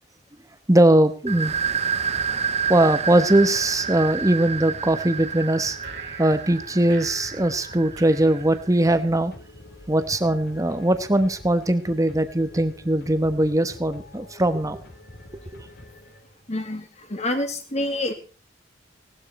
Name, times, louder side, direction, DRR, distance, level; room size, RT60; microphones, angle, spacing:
voice 1, 0.7-1.5 2.7-5.8 6.2-9.3 9.9-14.8, right 1 dB, 20° right, 1.2 m, -20 dB
sound 1, 1.3-8.7, right 6 dB, 35° right, 0.7 m, -29 dB
sound 2, 1.4-16.5, left 1 dB, 55° left, 3.3 m, -45 dB
sound 3, 5.8-9.2, right 4 dB, 70° right, 2.8 m, -44 dB
voice 2, 16.5-18.1, left 1 dB, 35° left, 2.4 m, -27 dB
17.5 x 12.5 x 4.3 m
head